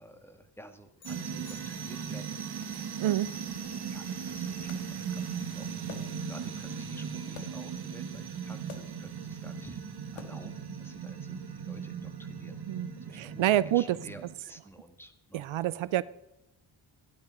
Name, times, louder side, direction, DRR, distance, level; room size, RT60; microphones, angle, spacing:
voice 1, 0.0-3.3 3.9-5.8 6.2-9.8 10.1-12.7 13.0-15.5, equal, 5° left, 6 dB, 1.8 m, -52 dB
sound 1, 1.0-2.4, left 5 dB, 65° left, 1.8 m, -56 dB
sound 2, 1.0-14.3, right 6 dB, 50° right, 1.6 m, -38 dB
voice 2, 2.7-3.3 12.7-14.0 15.3-16.0, right 13 dB, 75° right, 18 dB, 0.6 m, -28 dB
sound 3, 4.7-4.9 5.9-6.4 7.4-7.7 8.7-9.1 10.1-10.6, left 7 dB, 85° left, 1.6 m, -48 dB
15.0 x 11.5 x 5.2 m, 0.93 s
cardioid pair, 80°, 49 cm